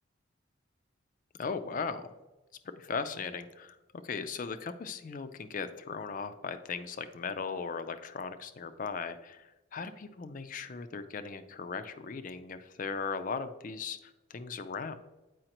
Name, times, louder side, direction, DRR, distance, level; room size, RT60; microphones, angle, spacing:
voice 1, 1.4-2.1 2.6-3.8 4.0-15.0, left 5 dB, 40° left, 10 dB, 0.4 m, -38 dB
7.7 x 4.9 x 2.9 m, 1.1 s
head